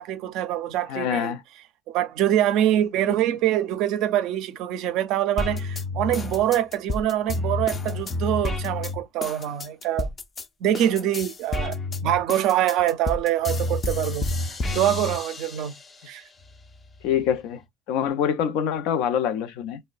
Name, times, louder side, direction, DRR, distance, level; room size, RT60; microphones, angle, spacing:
voice 1, 0.0-1.3 1.9-10.1 10.6-11.8 12.0-14.3 14.7-15.8 16.1-16.2, right 11 dB, 75° right, 0.4 m, -24 dB
voice 2, 0.9-1.4 3.0-3.1 17.0-17.6 17.9-19.8, left 8 dB, 85° left, 0.5 m, -25 dB
sound 1, 5.4-10.5 10.7-15.9 16.4-17.4, left 2 dB, 30° left, 0.4 m, -30 dB
5.1 x 2.1 x 2.3 m
cardioid pair, 130°, 0 cm